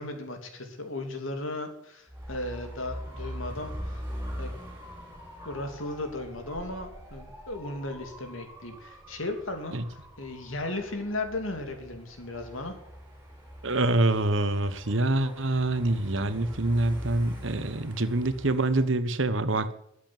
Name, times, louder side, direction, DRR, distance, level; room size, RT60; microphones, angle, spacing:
voice 1, 0.0-4.0 4.4-4.5 5.4-12.8, left 2 dB, 80° left, 5 dB, 2.9 m, -36 dB
Dog / Motorcycle, 2.1-18.8, equal, 10° right, 4.0 m, -42 dB
voice 2, 13.6-19.7, right 2 dB, 70° right, 12 dB, 1.3 m, -26 dB
13.5 x 8.4 x 9.0 m, 0.75 s
head